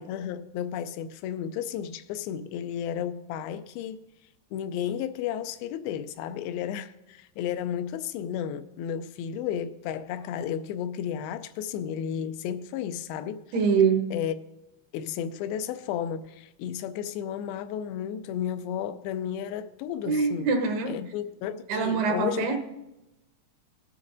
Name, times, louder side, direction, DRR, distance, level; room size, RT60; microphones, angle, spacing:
voice 1, 0.0-4.0 4.5-13.5 14.1-14.3 14.9-20.5 20.9-22.6, left 9 dB, 80° left, 2.3 m, -33 dB
voice 2, 13.5-14.1 20.0-20.9 21.7-22.6, right 5 dB, 75° right, 3.0 m, -24 dB
19.5 x 9.7 x 2.7 m
omnidirectional pair, 4.7 m